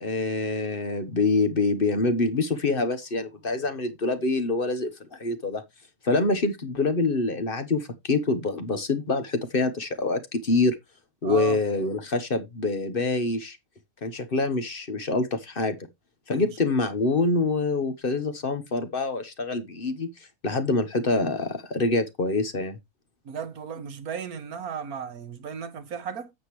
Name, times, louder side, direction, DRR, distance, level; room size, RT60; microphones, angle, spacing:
voice 1, 0.0-5.6 6.0-10.8 11.2-13.6 14.0-15.8 16.3-20.1 20.4-22.8, left 3 dB, 40° left, 1.2 m, -26 dB
voice 2, 11.2-11.6 16.3-16.5 23.3-26.3, right 6 dB, 85° right, 1.8 m, -35 dB
9.4 x 7.6 x 3.1 m
omnidirectional pair, 1.5 m